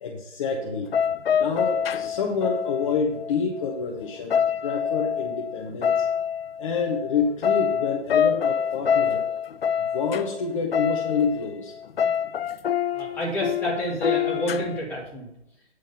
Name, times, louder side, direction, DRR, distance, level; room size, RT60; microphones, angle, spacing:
voice 1, 0.0-0.9 1.3-6.0 6.6-9.2 9.9-11.7, left 5 dB, 30° left, 0 dB, 0.9 m, -28 dB
sound 1, 0.9-3.8 4.1-11.5 11.8-14.8, left 8 dB, 60° left, 0.4 m, -26 dB
voice 2, 12.9-15.3, equal, 5° left, -6 dB, 1.9 m, -29 dB
9.2 x 6.3 x 5.4 m, 0.83 s
figure-of-eight pair, 145°, 35 cm